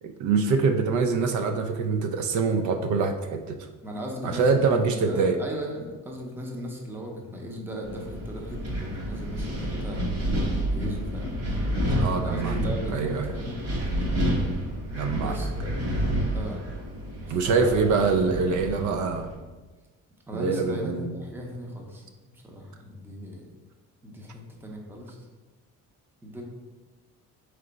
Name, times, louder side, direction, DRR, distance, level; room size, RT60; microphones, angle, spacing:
voice 1, 0.0-3.7 4.2-5.4 12.0-12.5 12.9-13.3 14.9-15.4 17.3-19.3 20.3-21.1, right 4 dB, 65° right, 6 dB, 0.4 m, -24 dB
voice 2, 3.8-10.0 10.7-11.4 12.2-13.9 15.2-15.8 16.3-16.6 17.2-17.9 20.3-22.1 22.3-23.6 24.0-25.3 26.2-26.4, equal, 5° right, -1 dB, 0.6 m, -37 dB
Wind, 7.8-19.3, equal, 50° right, 1.1 m, -29 dB
3.8 x 3.3 x 3.9 m, 1.2 s
cardioid pair, 160°, 32 cm